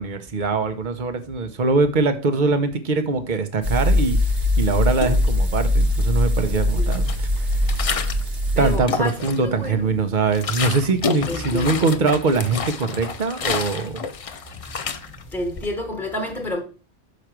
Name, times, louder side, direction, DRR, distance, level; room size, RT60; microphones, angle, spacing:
voice 1, 0.0-4.2 4.6-7.5 8.6-14.0, right 4 dB, 45° right, 1.0 m, -22 dB
sound 1, 3.6-8.8, left 1 dB, 85° right, 2.1 m, -21 dB
sound 2, 4.9-5.8 6.1-8.3 8.7-9.6 10.0-15.7, left 5 dB, 45° left, 0.5 m, -30 dB
voice 2, 8.5-9.1 9.4-9.9 11.3-11.9 15.3-16.6, left 1 dB, ahead, 1.4 m, -28 dB
6.3 x 5.0 x 6.0 m
omnidirectional pair, 1.2 m